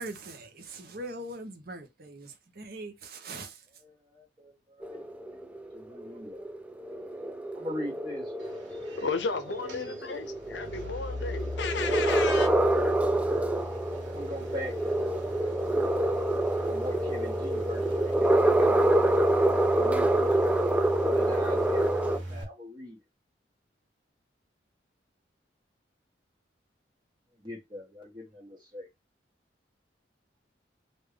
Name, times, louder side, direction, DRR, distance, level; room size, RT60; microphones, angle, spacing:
voice 1, 0.0-3.6, right 2 dB, 55° right, 0.8 m, -41 dB
voice 2, 3.7-6.5 7.5-8.3 9.6-10.2 13.0-13.6 14.0-14.8 16.7-19.2 19.5-20.4 21.0-23.0 27.4-28.9, left 1 dB, 25° right, 1.3 m, -42 dB
sound 1, 4.8-22.2, right 1 dB, 5° right, 0.3 m, -27 dB
sound 2, 8.4-22.4, equal, 85° right, 1.5 m, -39 dB
voice 3, 8.9-12.5, left 4 dB, 75° left, 0.6 m, -33 dB
3.5 x 2.6 x 3.3 m
head